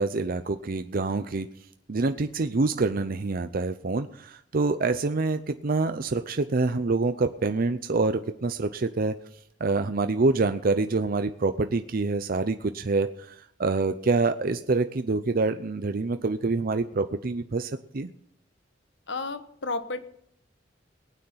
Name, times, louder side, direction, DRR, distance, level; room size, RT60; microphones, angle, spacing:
voice 1, 0.0-1.5 1.9-9.1 9.6-18.1, right 3 dB, 50° right, 9 dB, 0.6 m, -26 dB
voice 2, 19.1-20.1, left 3 dB, 70° left, 10 dB, 1.2 m, -32 dB
19.5 x 9.2 x 5.7 m, 0.69 s
head